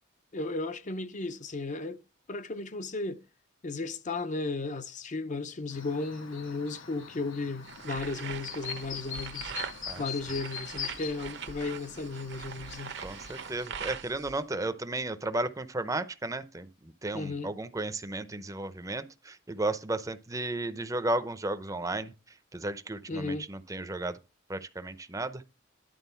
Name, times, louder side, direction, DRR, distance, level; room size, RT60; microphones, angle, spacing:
voice 1, 0.3-2.0 2.3-3.2 3.6-9.5 10.0-13.0 17.1-17.5 23.1-23.5, left 3 dB, 40° left, 0.6 m, -35 dB
Chirp tweet, 5.7-13.7, left 8 dB, 90° left, 1.5 m, -43 dB
sound 1, 7.7-14.4, right 6 dB, 60° right, 0.8 m, -42 dB
voice 2, 13.0-22.1 22.5-24.2 24.5-25.4, right 2 dB, 15° right, 0.6 m, -34 dB
11.0 x 3.8 x 5.6 m
head